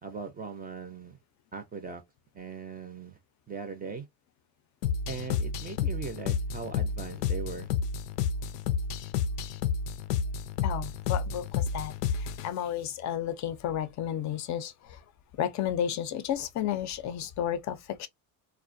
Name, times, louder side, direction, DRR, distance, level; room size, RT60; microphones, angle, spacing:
voice 1, 0.0-1.2 1.5-2.0 2.3-3.2 3.5-4.0 5.1-7.7, right 5 dB, 20° right, 0.5 m, -39 dB
sound 1, 4.8-12.5, left 6 dB, 90° left, 0.5 m, -30 dB
voice 2, 10.6-15.0 15.3-18.1, left 10 dB, 40° left, 0.5 m, -32 dB
2.3 x 2.2 x 2.5 m
supercardioid pair, 100°, 46 cm